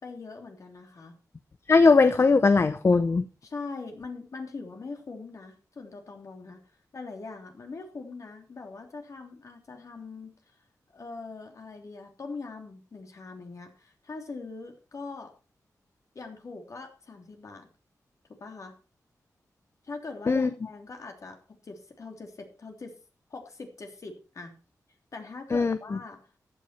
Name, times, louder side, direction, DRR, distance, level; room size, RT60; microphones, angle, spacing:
voice 1, 0.0-1.2 3.4-6.6 6.9-10.3 10.9-15.3 16.1-17.7 18.4-18.7 19.8-22.9 23.3-24.5 25.1-26.2, left 3 dB, 55° left, 3.2 m, -42 dB
voice 2, 1.7-3.2 20.3-20.5 25.5-25.8, left 4 dB, 40° left, 0.7 m, -19 dB
14.5 x 9.5 x 4.5 m
wide cardioid pair, 90°, 6 cm